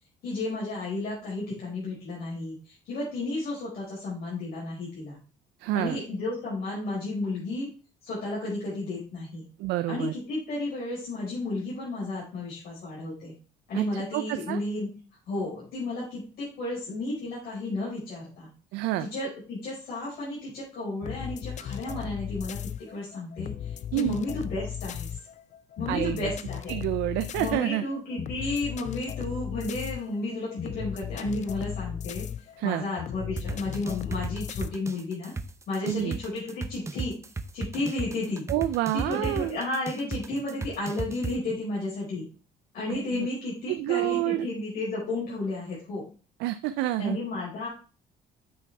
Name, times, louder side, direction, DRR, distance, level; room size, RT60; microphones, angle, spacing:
voice 1, 0.2-5.2 5.7-7.7 8.0-9.4 9.9-13.3 13.7-14.9 15.3-18.5 19.0-25.2 25.8-26.7 27.4-32.3 32.6-35.3 35.7-37.1 37.5-38.5 38.9-42.3 42.7-46.1 47.0-47.7, left 2 dB, 65° left, -7 dB, 4.9 m, -33 dB
voice 2, 5.6-6.0 9.6-10.1 13.7-14.6 18.7-19.1 23.9-24.2 25.9-26.3 26.7-27.8 32.6-32.9 35.8-36.2 38.5-39.6 42.9-43.3 43.7-44.5 46.4-47.2, right 14 dB, 90° right, 11 dB, 0.4 m, -28 dB
sound 1, 21.0-34.7, left 9 dB, 45° left, 0.4 m, -36 dB
sound 2, 33.4-41.3, right 4 dB, 15° right, 0.7 m, -34 dB
8.6 x 5.9 x 3.3 m, 0.35 s
cardioid pair, 110°, 17 cm